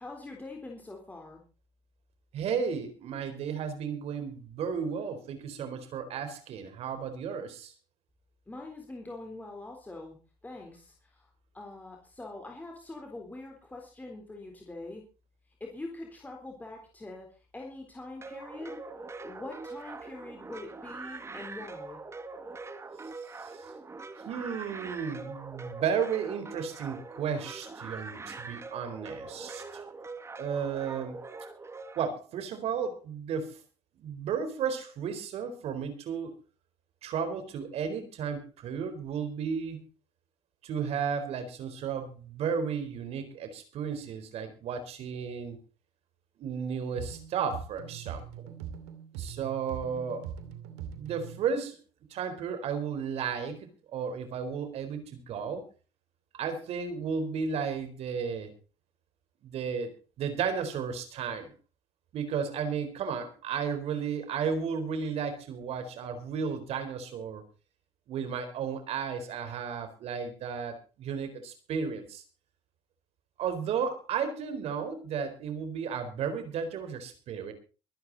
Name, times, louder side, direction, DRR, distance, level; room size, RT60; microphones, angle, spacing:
voice 1, 0.0-1.4 8.5-10.2 10.4-11.3 11.5-15.0 15.6-17.3 17.5-18.8 19.2-22.0, left 2 dB, 15° left, 1 dB, 3.8 m, -43 dB
voice 2, 2.3-7.7 23.4-23.5 24.3-29.6 30.4-31.2 32.0-33.6 34.0-36.4 37.0-39.8 40.6-45.6 46.4-48.5 49.1-50.3 51.0-51.8 52.1-55.6 56.4-58.5 59.4-59.9 60.2-61.5 62.1-67.4 68.1-72.2 73.4-77.5, right 6 dB, 65° right, 9 dB, 4.1 m, -33 dB
sound 1, 18.2-32.1, right 3 dB, 25° right, 2.1 m, -43 dB
sound 2, 47.0-51.5, right 8 dB, 85° right, 2.6 m, -42 dB
23.5 x 9.8 x 4.1 m, 0.34 s
supercardioid pair, 85°, 12 cm